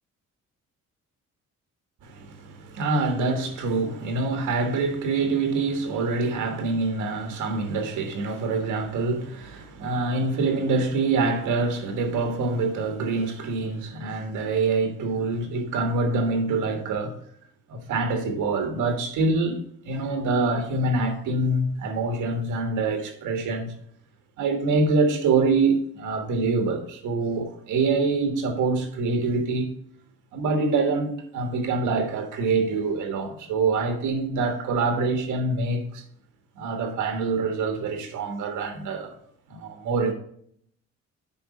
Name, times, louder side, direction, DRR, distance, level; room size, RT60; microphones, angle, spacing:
voice 1, 2.0-17.2 17.7-19.6 19.8-23.7 24.4-29.7 30.3-36.0 36.5-39.1 39.5-40.1, right 3 dB, 90° right, 1.6 m, -25 dB
7.0 x 4.7 x 4.9 m
cardioid pair, 90°, 30 cm